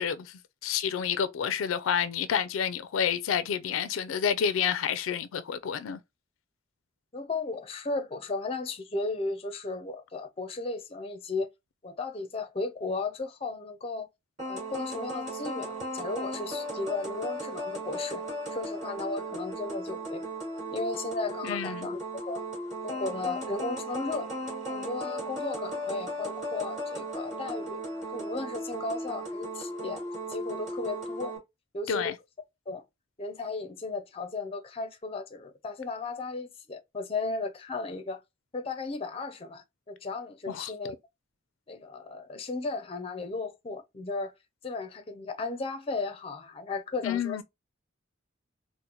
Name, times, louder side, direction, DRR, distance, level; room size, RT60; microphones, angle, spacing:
voice 1, 0.0-6.0 21.4-21.9 31.9-32.1 40.5-40.7 47.0-47.4, left 7 dB, 85° left, 0.4 m, -29 dB
voice 2, 7.1-11.5 11.8-14.1 14.5-18.2 18.5-20.3 20.7-22.4 22.8-24.3 24.7-27.8 28.1-30.0 30.3-31.3 31.7-32.0 32.7-32.8 33.2-38.2 38.5-41.0 41.7-44.3 44.6-47.4, left 3 dB, 30° left, 0.5 m, -35 dB
sound 1, 14.4-31.4, right 1 dB, 35° right, 2.3 m, -36 dB
3.9 x 2.1 x 2.8 m
head